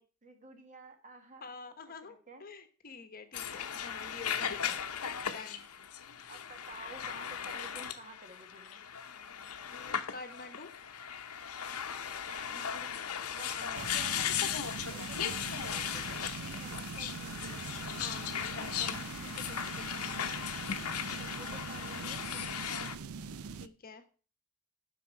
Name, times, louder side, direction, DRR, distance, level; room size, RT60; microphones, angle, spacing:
voice 1, 0.0-1.4 2.0-2.4 4.7-5.4 6.3-8.8 12.2-14.3 14.9-17.7 21.2-22.6, right 2 dB, 35° right, 7 dB, 1.3 m, -52 dB
voice 2, 1.4-4.8 5.2-5.7 9.7-10.7 13.5-13.8 18.0-20.4 23.6-24.0, left 4 dB, 40° left, 9 dB, 1.0 m, -48 dB
sound 1, 3.3-22.9, left 8 dB, 85° left, 0.9 m, -37 dB
sound 2, 13.7-23.7, right 5 dB, 75° right, 0.5 m, -43 dB
11.5 x 5.8 x 4.5 m, 0.38 s
head